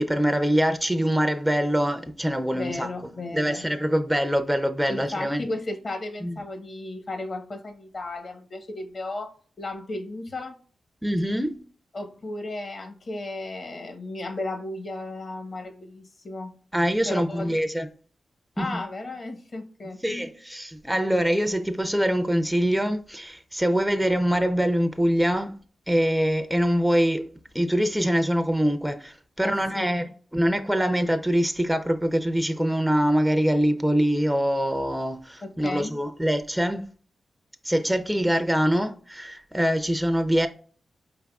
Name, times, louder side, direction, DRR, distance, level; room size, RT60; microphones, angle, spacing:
voice 1, 0.0-2.9 3.3-5.4 6.2-6.3 11.0-11.5 16.7-17.9 18.6-18.8 20.0-25.5 25.9-30.1 30.3-36.8 37.6-40.5, equal, 5° right, 0.4 m, -24 dB
voice 2, 2.5-3.6 4.9-9.3 9.6-10.5 11.9-16.5 17.0-17.5 18.6-20.3 29.4-29.9 35.4-35.9, left 2 dB, 50° left, 0.9 m, -34 dB
4.6 x 3.4 x 2.3 m
cardioid pair, 65°, 0 cm